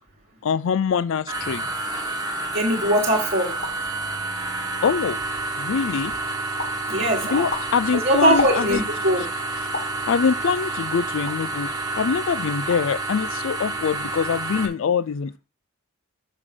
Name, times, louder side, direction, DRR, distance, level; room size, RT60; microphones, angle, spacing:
voice 1, 0.4-1.6 4.8-5.2 5.6-6.1 7.3-8.8 9.6-9.7 10.1-11.7 12.0-15.4, left 6 dB, 60° left, 0.4 m, -24 dB
sound 1, 1.3-14.7, right 2 dB, 15° right, 1.7 m, -29 dB
voice 2, 2.5-3.5 6.9-7.5 8.0-9.2, right 1 dB, 40° right, 1.7 m, -21 dB
sound 2, 3.6-3.9 4.4-4.5 4.7-5.2 5.7-6.1 6.6-6.9 7.3-9.0 9.7-10.0 10.6-11.5 12.0-12.2 12.5-13.0 13.2-13.7, left 3 dB, 45° left, 2.8 m, -33 dB
6.5 x 6.1 x 6.0 m
head